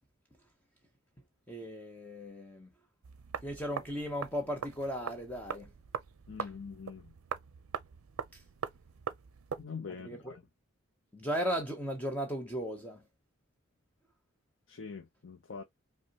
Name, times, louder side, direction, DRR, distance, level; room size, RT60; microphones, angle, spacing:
voice 1, 1.5-2.7 3.4-5.7 6.4-6.5 8.3-8.4 10.0-10.4 11.1-13.0, equal, 10° left, 0.7 m, -36 dB
sound 1, 3.0-9.6, right 6 dB, 80° right, 0.5 m, -42 dB
voice 2, 6.3-7.1 9.6-10.4 14.7-15.6, left 5 dB, 60° left, 0.6 m, -44 dB
5.3 x 2.1 x 2.8 m
head